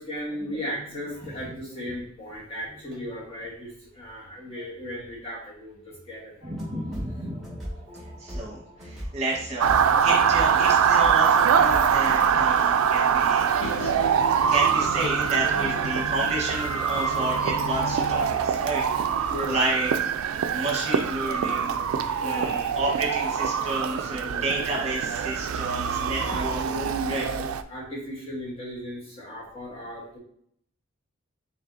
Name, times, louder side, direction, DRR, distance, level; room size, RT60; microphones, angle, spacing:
voice 1, 0.0-6.5 8.5-8.6 9.0-9.1 15.4-16.2 19.3-19.6 22.1-22.6 23.9-24.5 26.2-27.4 27.7-30.2, equal, 25° left, -4 dB, 1.2 m, -36 dB
sound 1, 6.4-12.1, equal, ahead, 1.9 m, -38 dB
voice 2, 6.5-7.6 8.2-13.9 14.5-19.9 20.3-21.7 22.2-27.2, right 2 dB, 30° right, -3 dB, 1.3 m, -31 dB
Motor vehicle (road) / Siren, 9.6-27.6, right 7 dB, 85° right, 0.3 m, -24 dB
sound 2, 13.6-19.2, left 1 dB, 70° left, 0.5 m, -35 dB
5.4 x 3.4 x 2.7 m, 0.64 s
head